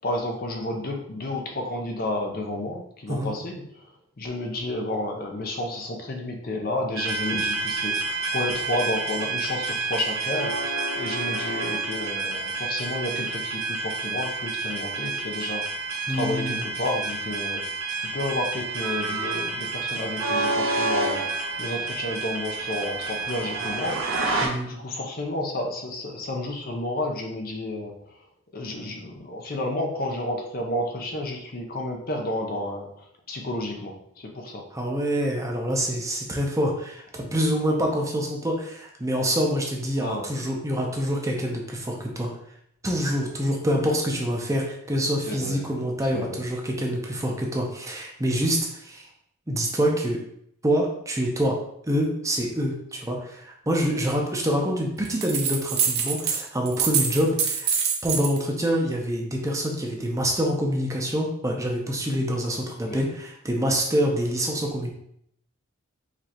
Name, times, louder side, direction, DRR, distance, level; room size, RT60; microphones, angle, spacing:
voice 1, 0.0-3.9 4.2-15.8 16.1-17.6 18.0-28.2 28.5-34.6 40.0-40.3 45.3-45.6 46.1-46.4 62.9-63.1, left 1 dB, 45° left, 2 dB, 0.7 m, -31 dB
sound 1, 7.0-24.5, right 3 dB, 85° right, 1.0 m, -29 dB
voice 2, 16.1-16.6 24.4-24.7 34.7-42.3 42.8-49.1 49.5-50.2 50.6-51.6 51.8-57.7 58.0-64.9, equal, 15° right, 0 dB, 0.6 m, -26 dB
sound 2, 55.0-56.4 56.7-58.4, right 7 dB, 50° right, 0.7 m, -25 dB
4.9 x 3.3 x 2.9 m, 0.71 s
head